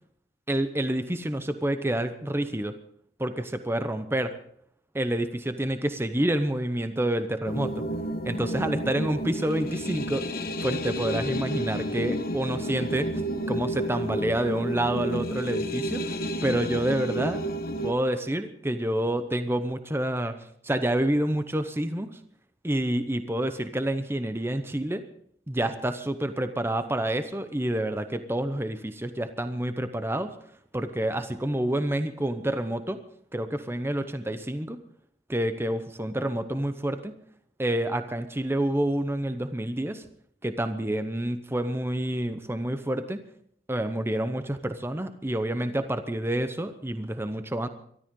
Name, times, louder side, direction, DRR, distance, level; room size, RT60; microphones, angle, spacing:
voice 1, 0.5-2.7 3.2-4.3 4.9-7.8 8.2-10.3 10.6-13.1 13.5-17.4 17.8-20.4 20.6-22.2 22.6-25.1 25.5-30.3 30.7-33.0 33.3-34.8 35.3-37.1 37.6-40.0 40.4-43.2 43.7-47.7, right 1 dB, 15° right, 9 dB, 0.9 m, -28 dB
sound 1, 7.5-17.9, equal, 55° left, 1.2 m, -31 dB
24.0 x 13.0 x 3.8 m, 0.64 s
head